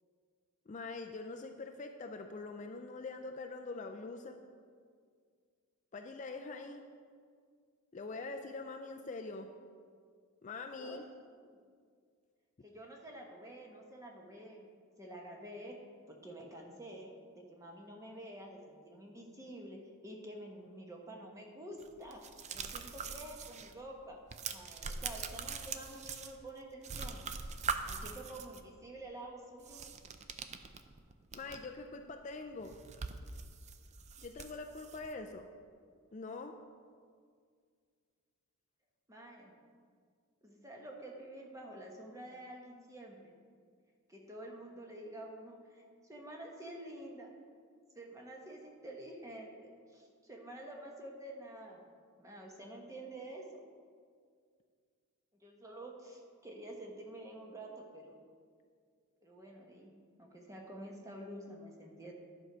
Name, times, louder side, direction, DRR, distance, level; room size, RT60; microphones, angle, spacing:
voice 1, 0.7-4.4 5.9-6.8 7.9-9.5 10.4-11.0 31.3-32.7 34.2-35.4 36.1-36.5, left 3 dB, 35° left, 4 dB, 0.4 m, -44 dB
voice 2, 12.6-14.6 15.0-15.8 16.1-22.2 22.5-24.2 24.5-27.3 27.8-29.8 39.1-39.5 40.4-43.3 44.1-47.3 47.9-51.8 52.2-53.6 55.4-58.2 59.2-59.9 60.2-62.1, right 1 dB, 15° right, 0 dB, 1.1 m, -49 dB
sound 1, 21.8-23.7 24.0-26.6 26.8-28.6 29.6-31.7 32.1-32.2 32.5-35.1, right 5 dB, 30° right, 0.4 m, -42 dB
11.0 x 4.6 x 6.1 m, 2.1 s
head